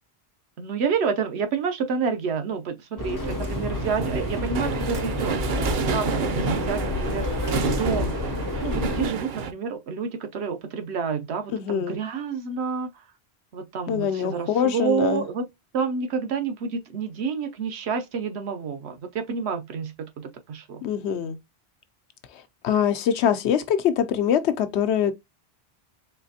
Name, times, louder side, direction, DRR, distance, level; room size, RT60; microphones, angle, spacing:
voice 1, 0.6-8.1 8.6-12.9 13.5-15.5 15.7-20.8, right 6 dB, 80° right, 0.9 m, -29 dB
Subway metro underground, 3.0-9.1, left 2 dB, 30° left, 0.4 m, -29 dB
sound 1, 3.2-9.5, right 5 dB, 55° right, 0.6 m, -29 dB
voice 2, 11.5-12.0 13.9-15.2 20.8-21.4 22.6-25.1, left 9 dB, 90° left, 0.9 m, -23 dB
4.2 x 3.1 x 2.7 m
omnidirectional pair, 1.1 m